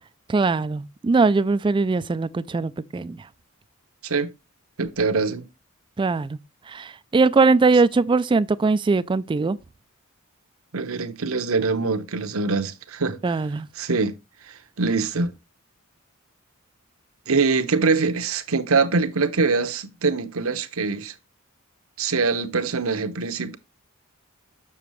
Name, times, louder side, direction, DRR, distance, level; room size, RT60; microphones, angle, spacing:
voice 1, 0.3-3.2 6.0-6.4 6.7-9.6 13.2-13.7, right 4 dB, 25° right, 0.3 m, -21 dB
voice 2, 4.8-5.5 10.7-13.2 13.8-14.2 14.5-15.3 17.3-21.1 22.0-23.6, right 4 dB, 70° right, 0.9 m, -23 dB
6.9 x 6.4 x 3.1 m
head